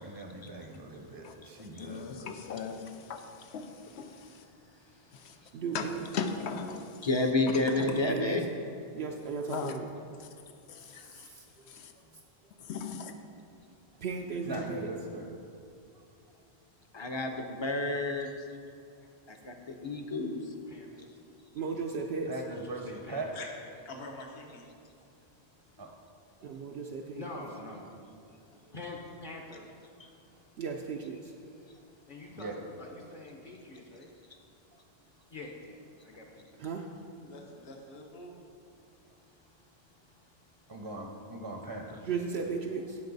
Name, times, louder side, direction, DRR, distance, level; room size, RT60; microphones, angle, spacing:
voice 1, 0.0-2.3 14.5-15.3 22.3-23.3 25.8-25.9 32.3-32.5 40.7-42.1, right 2 dB, 30° right, 2 dB, 0.7 m, -41 dB
voice 2, 1.8-3.7 3.9-4.3 5.2-5.3 5.7-5.9 6.1-6.8 7.5-7.6 9.5-9.8 10.7-11.3 11.7-11.9 12.7-13.1, left 6 dB, 90° left, 7 dB, 1.0 m, -38 dB
voice 3, 5.5-6.0 8.1-8.4 8.9-9.9 11.1-11.4 14.0-14.9 21.5-22.3 26.4-27.2 30.6-31.3 36.6-36.9 42.0-43.0, right 5 dB, 75° right, 0 dB, 0.9 m, -35 dB
voice 4, 7.0-8.4 16.9-18.3 19.3-20.4, left 2 dB, 30° left, 4 dB, 0.7 m, -30 dB
voice 5, 20.7-21.2 22.4-23.2 27.1-27.9 28.7-29.7 32.1-34.1 35.3-36.7, left 2 dB, 50° left, -1 dB, 1.0 m, -45 dB
voice 6, 23.9-24.6 28.5-28.6 37.2-38.3, left 2 dB, 70° left, 0 dB, 1.3 m, -45 dB
15.5 x 5.3 x 4.0 m, 2.5 s
omnidirectional pair, 1.1 m